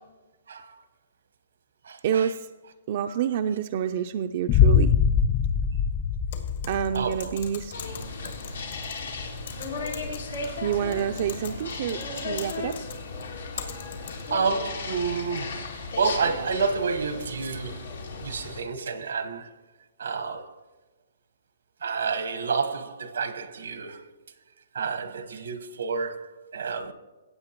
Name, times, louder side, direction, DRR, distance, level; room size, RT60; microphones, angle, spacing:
voice 1, 0.5-0.8 1.8-2.3 6.9-7.3 8.5-9.1 13.5-13.7 14.3-19.5 20.0-20.6 21.8-24.1 24.7-26.9, right 5 dB, 85° right, 1.1 m, -30 dB
voice 2, 2.0-2.5 2.9-5.0 6.7-7.8 10.6-12.8, right 9 dB, 50° right, 0.4 m, -28 dB
sound 1, 4.5-7.5, left 7 dB, 25° left, 0.4 m, -22 dB
Typing, 6.3-14.4, left 7 dB, 70° left, 1.9 m, -42 dB
sound 2, 7.7-18.6, left 3 dB, 90° left, 2.1 m, -36 dB
16.5 x 8.3 x 2.9 m
hypercardioid pair, 145°, 0 cm